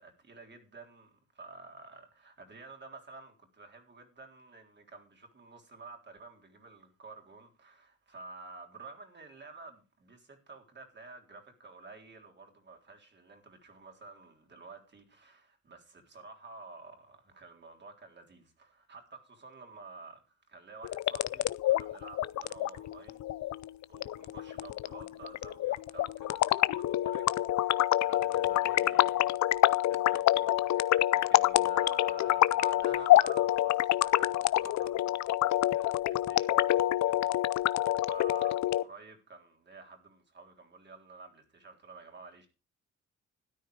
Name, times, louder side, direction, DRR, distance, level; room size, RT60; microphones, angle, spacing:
voice 1, 0.0-23.2 23.9-29.3 29.8-34.3 34.6-35.3 35.7-37.3 38.0-42.5, right 3 dB, 35° right, 3.6 m, -51 dB
sound 1, 20.8-38.8, left 14 dB, 65° left, 0.6 m, -27 dB
13.0 x 9.5 x 4.9 m
cardioid pair, 90°, 30 cm